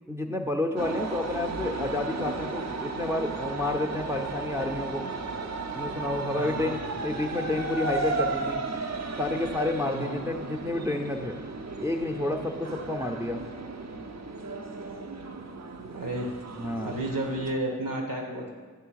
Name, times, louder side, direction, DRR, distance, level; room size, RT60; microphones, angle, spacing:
voice 1, 0.1-5.1 5.7-8.6 9.2-11.4 11.8-13.4 16.6-17.0, left 2 dB, 10° right, 2 dB, 0.5 m, -30 dB
sound 1, 0.8-17.5, right 3 dB, 55° right, 0.6 m, -35 dB
voice 2, 6.3-6.9 9.9-10.1 15.9-16.3 16.8-18.5, right 1 dB, 85° right, 0 dB, 1.3 m, -32 dB
8.7 x 3.2 x 6.3 m, 1.5 s
wide cardioid pair, 70°, 32 cm